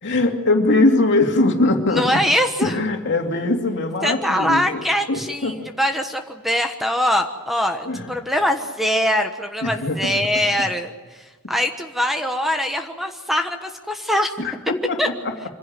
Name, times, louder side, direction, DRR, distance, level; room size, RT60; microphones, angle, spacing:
voice 1, 0.0-2.1 2.6-5.7 7.8-8.1 9.6-10.2 14.4-15.4, left 2 dB, 55° left, 3 dB, 2.7 m, -21 dB
voice 2, 1.9-2.8 4.0-14.3 15.0-15.1, equal, ahead, 5 dB, 1.2 m, -23 dB
26.0 x 16.0 x 9.0 m, 1.3 s
head